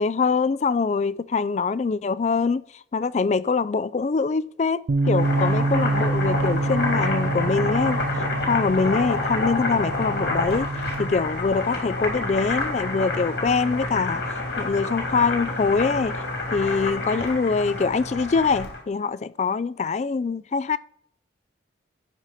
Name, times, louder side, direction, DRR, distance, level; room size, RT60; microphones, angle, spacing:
voice 1, 0.0-8.0 8.5-10.7 11.0-14.2 14.6-16.2 16.5-20.8, left 4 dB, 35° left, 0.3 m, -24 dB
Bass guitar, 4.9-11.1, right 2 dB, 65° right, 0.4 m, -26 dB
Boiling, 5.0-18.8, left 2 dB, 70° left, 2.9 m, -28 dB
12.5 x 4.9 x 4.1 m
head